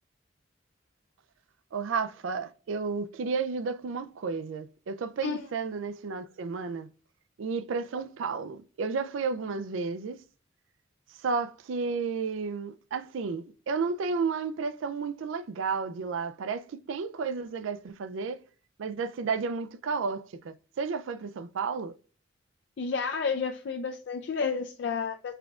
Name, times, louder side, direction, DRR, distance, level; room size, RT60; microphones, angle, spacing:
voice 1, 1.7-6.9 7.4-10.2 11.2-18.4 18.8-21.9, right 5 dB, 85° right, 0.4 m, -32 dB
voice 2, 22.8-25.3, left 5 dB, 65° left, 0.4 m, -31 dB
5.7 x 3.5 x 2.3 m
head